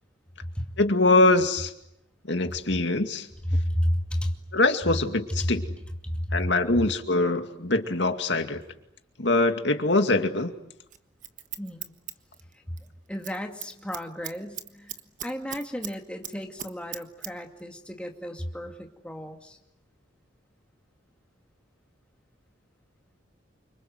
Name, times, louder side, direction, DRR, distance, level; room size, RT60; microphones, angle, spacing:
voice 1, 0.8-1.7 2.3-3.3 4.5-5.6 6.3-8.6 9.2-10.5, left 2 dB, 65° left, 7 dB, 2.3 m, -23 dB
voice 2, 3.4-4.3 5.3-5.5 6.0-6.5 11.6-11.9 13.1-15.0 15.2-19.6, equal, 5° left, 3 dB, 2.4 m, -31 dB
Scissors, 10.9-12.9 13.1-13.4 13.6-15.9 16.2-17.3 17.6-17.7, right 10 dB, 40° right, 1.3 m, -38 dB
28.5 x 26.0 x 7.9 m, 0.79 s
head